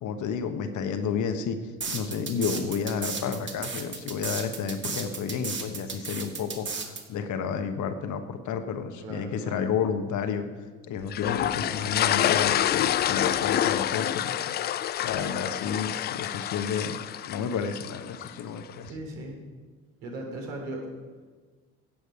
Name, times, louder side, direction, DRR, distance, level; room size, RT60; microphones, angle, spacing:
voice 1, 0.0-14.5 15.0-17.0 17.2-18.9, left 6 dB, 45° left, 8 dB, 1.3 m, -31 dB
sound 1, 1.8-7.0, right 4 dB, 25° right, 2.1 m, -34 dB
voice 2, 9.0-9.6 11.6-12.3 18.9-19.4 20.0-20.9, right 1 dB, 65° right, 0 dB, 3.4 m, -38 dB
sound 2, 11.1-18.4, left 11 dB, 25° left, 0.4 m, -27 dB
16.0 x 8.0 x 4.9 m, 1.4 s
figure-of-eight pair, 55°, 41 cm